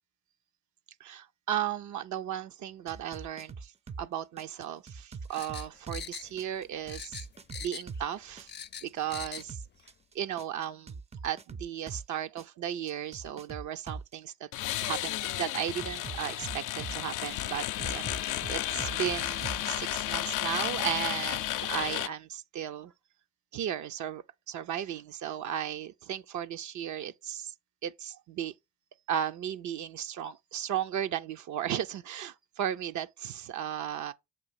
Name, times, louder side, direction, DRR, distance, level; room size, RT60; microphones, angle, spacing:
voice 1, 1.0-3.7 4.0-7.2 7.6-8.5 8.8-9.6 10.1-10.9 11.2-14.5 14.8-22.9 23.5-27.5 27.8-28.5 29.1-34.1, right 10 dB, 70° right, 0.7 m, -35 dB
sound 1, 2.9-4.1 4.4-8.1 8.4-12.1 12.4-14.1 15.8-17.4 17.8-19.7, right 4 dB, 20° right, 0.4 m, -42 dB
sound 2, 5.3-6.6 6.9-8.0 8.3-9.5 9.8-9.9, left 8 dB, 35° left, 0.5 m, -42 dB
sound 3, 14.5-22.1, left 14 dB, 85° left, 0.5 m, -33 dB
7.6 x 2.6 x 5.6 m
cardioid pair, 90°, 30 cm